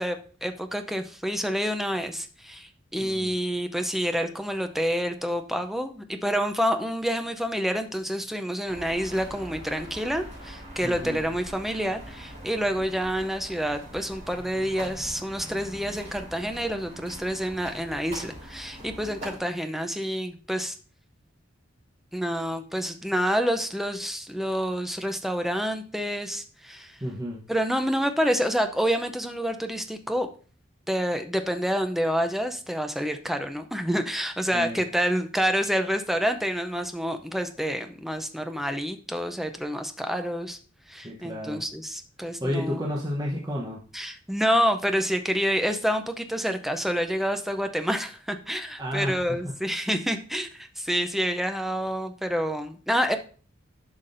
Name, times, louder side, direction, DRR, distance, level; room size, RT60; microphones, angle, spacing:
voice 1, 0.0-20.8 22.1-27.0 27.5-30.3 30.9-40.6 40.9-42.9 43.9-53.2, equal, ahead, 6 dB, 0.5 m, -28 dB
voice 2, 3.0-3.4 10.8-11.2 27.0-27.4 34.5-34.8 41.0-41.6 42.4-43.8 48.8-49.5, equal, 20° right, -3 dB, 0.9 m, -31 dB
sound 1, 8.7-19.4, equal, 35° right, 3.6 m, -43 dB
10.5 x 5.8 x 2.6 m, 0.40 s
head